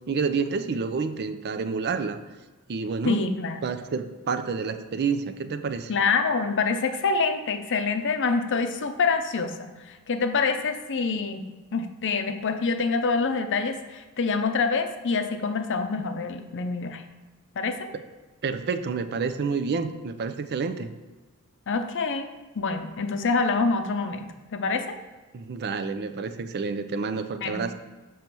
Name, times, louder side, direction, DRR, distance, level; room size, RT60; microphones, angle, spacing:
voice 1, 0.1-2.2 2.7-3.2 3.6-5.9 18.4-20.9 25.3-27.7, right 5 dB, 50° right, 10 dB, 0.4 m, -29 dB
voice 2, 3.0-3.6 5.9-11.4 11.7-17.0 17.6-17.9 21.7-22.3 22.6-25.0 27.4-27.7, left 4 dB, 55° left, 7 dB, 0.6 m, -26 dB
6.8 x 3.1 x 6.0 m, 1.2 s
head